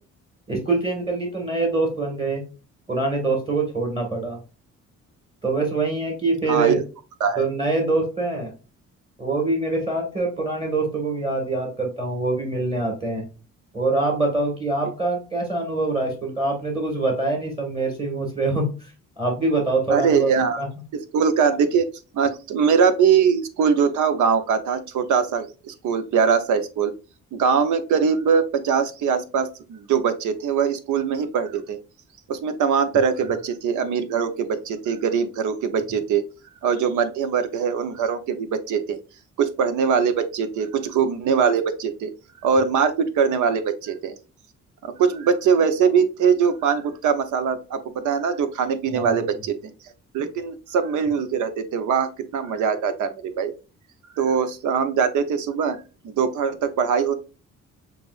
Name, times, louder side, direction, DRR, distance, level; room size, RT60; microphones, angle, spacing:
voice 1, 0.5-2.4 2.9-4.4 5.4-6.8 7.4-8.5 9.2-13.2 13.7-18.7 19.2-20.7 48.9-49.3, right 3 dB, 20° right, 0 dB, 1.7 m, -24 dB
voice 2, 19.9-20.6 21.1-21.8 22.1-26.9 27.3-31.8 32.3-36.2 36.6-39.0 39.4-42.1 42.4-44.1 44.8-49.5 50.1-53.5 54.2-55.8 56.0-57.1, right 6 dB, 80° right, 10 dB, 0.8 m, -22 dB
6.8 x 2.5 x 2.4 m, 0.33 s
cardioid pair, 90°, 30 cm